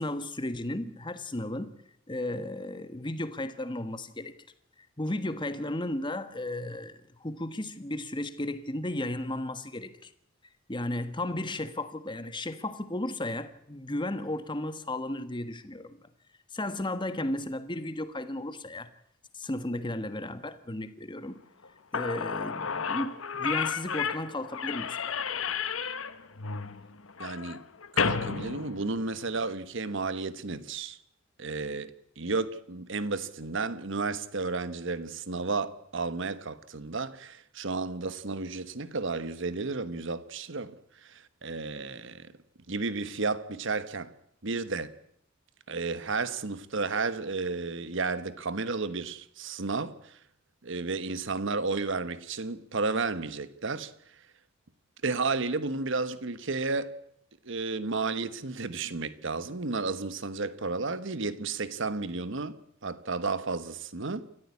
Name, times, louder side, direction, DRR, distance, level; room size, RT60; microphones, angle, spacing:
voice 1, 0.0-1.8 2.1-4.3 5.0-10.1 10.7-16.0 16.5-18.9 19.3-21.4 21.9-25.2, left 1 dB, 25° left, 1.4 m, -34 dB
Slam / Squeak, 21.6-21.7 21.9-29.4, left 6 dB, 85° left, 1.2 m, -32 dB
voice 2, 27.2-27.6 27.9-31.0 31.4-40.8 41.0-42.3 42.7-44.1 44.4-44.9 45.7-50.2 50.6-53.9 55.0-56.9 57.4-64.3, right 3 dB, 65° right, 1.2 m, -32 dB
28.5 x 14.0 x 8.5 m
head